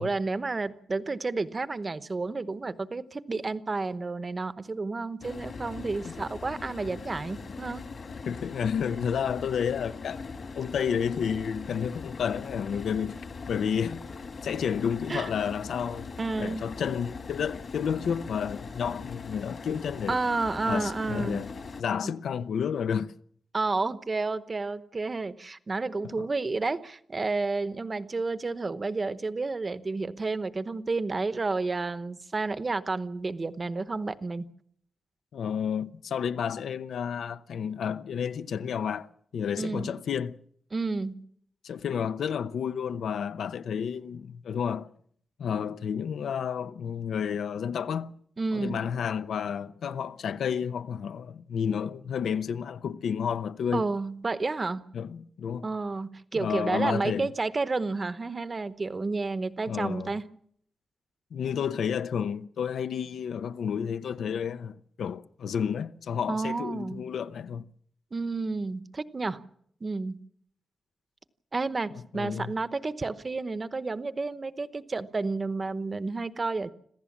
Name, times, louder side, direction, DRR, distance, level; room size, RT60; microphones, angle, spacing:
voice 1, 0.0-7.8 15.1-15.3 16.2-16.6 20.1-21.5 22.0-22.1 23.5-34.5 39.6-39.9 40.7-41.1 48.4-48.9 53.7-54.8 55.6-60.2 66.3-67.0 68.1-69.4 69.8-70.2 71.5-76.7, right 3 dB, 25° right, 0.9 m, -31 dB
sound 1, 5.2-21.8, left 4 dB, 50° left, 2.3 m, -41 dB
voice 2, 8.2-10.2 10.6-13.2 13.5-14.0 14.4-16.1 16.4-20.2 20.6-21.5 21.8-23.1 26.0-26.3 35.3-40.4 41.6-44.9 45.4-48.1 48.5-53.9 54.9-55.7 56.3-57.3 59.7-60.2 61.3-67.7 72.1-72.5, left 7 dB, 80° left, 0.8 m, -31 dB
26.5 x 15.5 x 7.3 m
wide cardioid pair, 155°, 0 cm